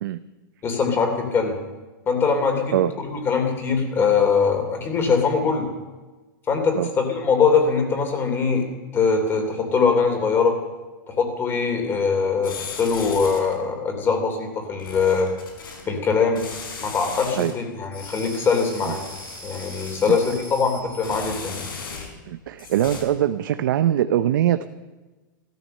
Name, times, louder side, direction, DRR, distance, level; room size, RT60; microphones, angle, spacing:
voice 1, 0.6-1.6 2.1-2.8 3.0-5.7 6.5-8.7 8.9-10.6 11.1-15.3 15.9-16.4 16.8-19.1 19.4-21.6, left 5 dB, 20° left, 4 dB, 3.1 m, -22 dB
sound 1, 12.4-13.6 14.8-15.8 16.4-17.5 17.9-22.3 22.6-23.0, left 4 dB, 90° left, 4.9 m, -37 dB
voice 2, 22.3-24.7, right 11 dB, 70° right, 10 dB, 0.7 m, -22 dB
15.0 x 13.5 x 6.6 m, 1.2 s
supercardioid pair, 145°, 11 cm